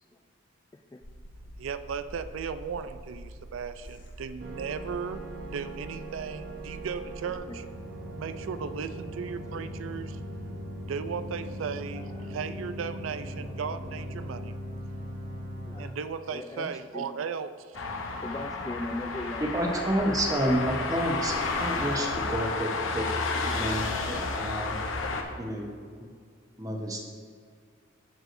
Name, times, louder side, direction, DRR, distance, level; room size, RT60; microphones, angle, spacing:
voice 1, 0.7-1.1 7.2-7.6 9.5-9.7 11.6-12.3 13.4-13.5 15.6-16.0 16.3-17.2 18.2-19.6 19.8-20.1, left 1 dB, 20° left, 6 dB, 0.3 m, -40 dB
sound 1, 1.0-7.4, equal, 40° left, 0.9 m, -46 dB
voice 2, 1.6-3.7 4.2-5.2 5.5-7.6 8.2-10.2 10.9-14.5 15.8-17.9, right 6 dB, 80° right, 11 dB, 0.4 m, -36 dB
sound 2, 4.4-15.8, equal, 50° right, 1.1 m, -39 dB
sound 3, 17.7-25.2, left 3 dB, 80° left, 0.8 m, -31 dB
voice 3, 19.4-23.1 23.5-24.8 25.4-25.7 26.6-27.0, right 1 dB, 20° right, 1 dB, 0.9 m, -29 dB
14.0 x 4.8 x 2.6 m, 2.1 s
head